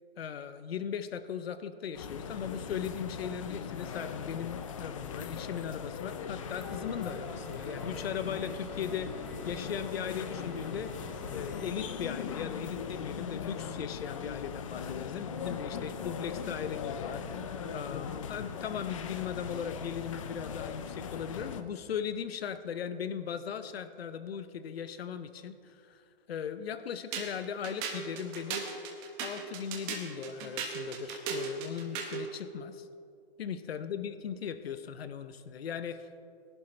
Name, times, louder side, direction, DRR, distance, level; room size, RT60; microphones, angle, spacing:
voice 1, 0.2-9.1 9.5-10.9 11.3-26.0 26.3-28.7 29.2-32.9 33.4-36.0, left 8 dB, 75° left, 12 dB, 0.8 m, -38 dB
sound 1, 1.9-21.6, left 6 dB, 30° left, 0.6 m, -39 dB
sound 2, 6.4-11.7, equal, ahead, 2.0 m, -47 dB
sound 3, 27.1-32.3, right 5 dB, 20° right, 1.3 m, -37 dB
20.5 x 11.5 x 3.3 m, 2.6 s
hypercardioid pair, 160°, 31 cm